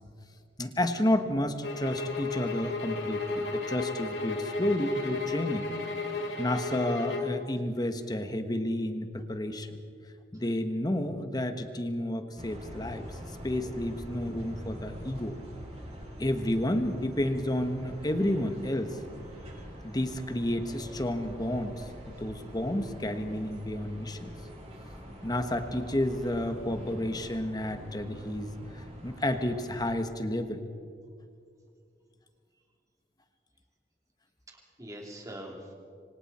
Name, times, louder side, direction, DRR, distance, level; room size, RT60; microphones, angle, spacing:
voice 1, 0.6-5.7 6.4-9.8 10.3-13.0 13.4-15.3 16.2-19.0 19.8-24.3 25.2-30.6, left 1 dB, 25° left, 8 dB, 1.3 m, -31 dB
sound 1, 1.6-7.4, left 3 dB, 70° left, 2.8 m, -34 dB
sound 2, 12.4-29.9, equal, 35° right, 7.2 m, -44 dB
voice 2, 34.5-35.7, equal, 20° right, -1 dB, 3.3 m, -45 dB
27.0 x 24.5 x 4.4 m, 2.3 s
head